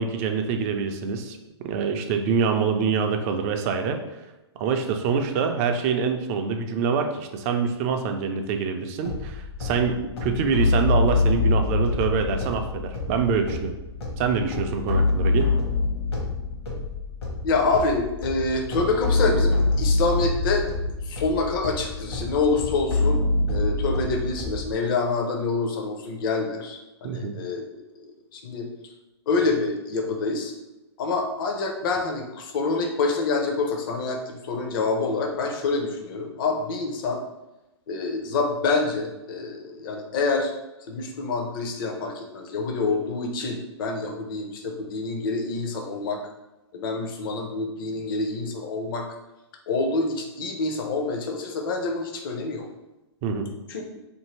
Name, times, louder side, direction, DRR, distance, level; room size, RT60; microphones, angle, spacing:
voice 1, 0.0-4.0 4.6-13.7 14.2-15.5 27.0-27.4 53.2-53.5, right 5 dB, 35° right, 6 dB, 0.4 m, -25 dB
sound 1, 9.0-24.7, left 2 dB, 65° left, 1.0 m, -26 dB
voice 2, 17.4-20.7 21.0-23.2 23.5-27.6 28.3-28.7 29.3-30.5 31.0-37.2 37.9-40.5 40.9-46.2 46.7-49.0 49.7-52.6 53.7-53.8, left 3 dB, 50° left, 2 dB, 0.6 m, -26 dB
2.6 x 2.6 x 3.0 m, 0.99 s
figure-of-eight pair, 120°, 15 cm